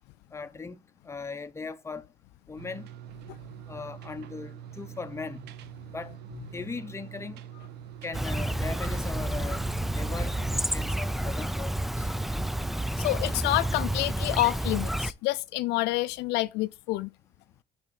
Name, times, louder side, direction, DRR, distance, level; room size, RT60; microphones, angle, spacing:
voice 1, 0.3-2.0 2.5-2.9 3.7-5.5 5.9-6.2 6.5-7.4 8.0-9.6 9.9-12.1, left 4 dB, 15° left, 0.8 m, -39 dB
sound 1, 2.6-10.7, right 10 dB, 80° right, 0.8 m, -45 dB
Chirp tweet, 8.1-15.1, right 1 dB, ahead, 0.3 m, -30 dB
voice 2, 13.0-17.1, left 18 dB, 85° left, 0.4 m, -28 dB
9.7 x 4.3 x 3.8 m
cardioid pair, 110°, 17 cm